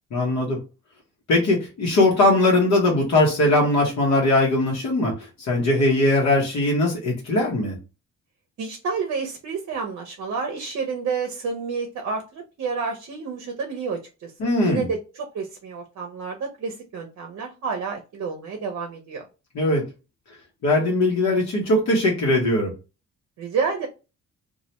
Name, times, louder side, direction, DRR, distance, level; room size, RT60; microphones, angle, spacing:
voice 1, 0.1-0.6 1.3-7.8 14.4-14.9 19.5-19.8 20.6-22.7, left 2 dB, 65° left, -1 dB, 0.9 m, -20 dB
voice 2, 8.6-14.3 14.6-19.3 23.4-23.9, right 5 dB, 60° right, 3 dB, 0.6 m, -29 dB
2.3 x 2.1 x 2.8 m, 0.30 s
cardioid pair, 90°, 30 cm